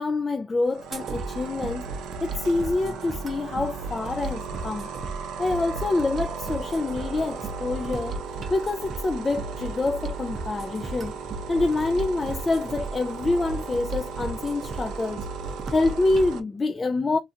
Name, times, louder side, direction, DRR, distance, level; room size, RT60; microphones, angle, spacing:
voice 1, 0.0-1.9 2.2-4.9 5.4-8.2 8.5-11.2 11.5-15.3 15.7-17.2, left 2 dB, 30° left, 0.3 m, -26 dB
sound 1, 0.6-16.4, right 6 dB, 90° right, 0.5 m, -37 dB
sound 2, 0.9-16.3, right 3 dB, 50° right, 0.7 m, -36 dB
3.1 x 2.4 x 2.7 m
cardioid pair, 90°, 0 cm